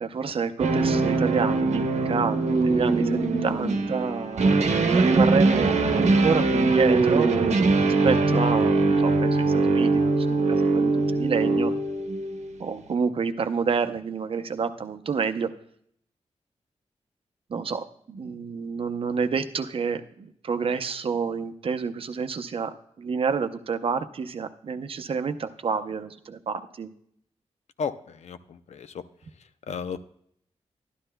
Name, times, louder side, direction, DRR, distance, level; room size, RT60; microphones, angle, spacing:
voice 1, 0.0-4.7 5.0-7.3 7.8-11.7 12.6-15.5 17.5-26.9, right 5 dB, 55° right, 9 dB, 0.6 m, -28 dB
sound 1, 0.6-12.5, right 3 dB, 80° right, 0.9 m, -22 dB
voice 2, 27.8-29.0 29.7-30.1, left 6 dB, 75° left, 11 dB, 0.6 m, -34 dB
12.5 x 12.0 x 2.2 m, 0.66 s
wide cardioid pair, 165°, 11 cm